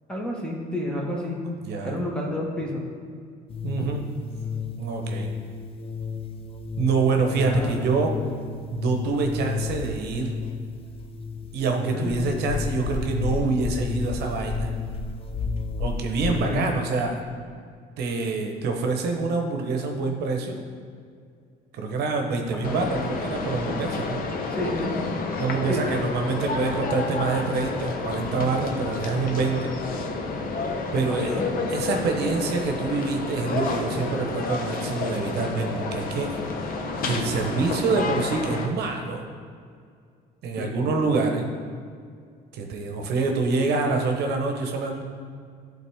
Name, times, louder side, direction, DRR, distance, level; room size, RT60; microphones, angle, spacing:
voice 1, 0.1-1.4 1.8-2.8 7.3-7.7 11.9-12.2 16.5-16.7 22.5-22.9 24.5-24.9 25.7-25.8 30.9-31.5 40.6-40.7, left 1 dB, 5° left, -2 dB, 1.2 m, -30 dB
voice 2, 1.6-2.0 3.6-4.0 4.8-5.3 6.8-8.1 8.7-10.3 11.5-14.7 15.8-17.2 18.0-20.6 21.7-24.2 25.4-29.7 30.9-31.4 31.7-36.4 37.0-39.2 40.4-41.5 42.5-45.0, right 4 dB, 75° right, 3 dB, 0.8 m, -26 dB
sound 1, 3.5-16.7, left 5 dB, 35° left, 0.4 m, -32 dB
sound 2, 22.6-38.7, left 3 dB, 55° left, 0.7 m, -30 dB
11.0 x 3.9 x 3.5 m, 2.2 s
cardioid pair, 110°, 17 cm